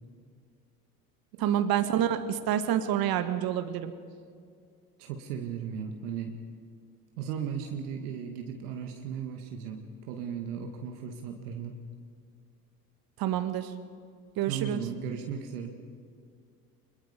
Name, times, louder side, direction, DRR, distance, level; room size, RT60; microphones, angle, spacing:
voice 1, 1.4-3.9 13.2-13.7 14.4-14.8, right 10 dB, 50° right, 10 dB, 1.8 m, -28 dB
voice 2, 5.0-6.4 7.2-11.8 14.5-15.7, right 7 dB, 70° right, 3 dB, 2.2 m, -36 dB
24.5 x 22.0 x 5.3 m, 2.2 s
hypercardioid pair, 70°, 47 cm